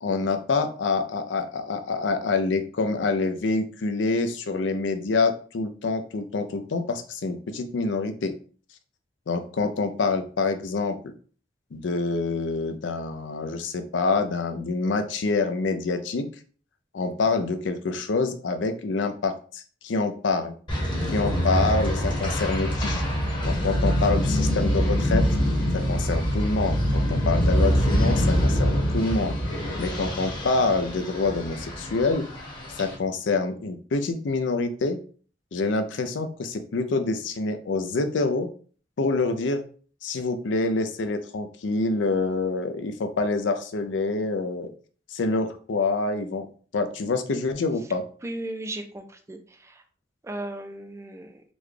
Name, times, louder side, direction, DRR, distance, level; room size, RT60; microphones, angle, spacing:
voice 1, 0.0-8.3 9.3-11.1 11.7-16.3 16.9-20.5 21.1-23.0 23.4-25.3 25.7-29.4 29.8-32.3 32.8-35.0 35.5-38.5 39.0-39.6 40.0-44.7 45.1-46.5 46.7-48.0, left 3 dB, 75° left, 8 dB, 0.5 m, -26 dB
sound 1, 20.7-32.9, equal, 25° left, 0.9 m, -24 dB
voice 2, 48.2-49.8 50.2-51.4, right 1 dB, 15° right, 6 dB, 0.4 m, -36 dB
3.9 x 2.2 x 3.1 m, 0.42 s
head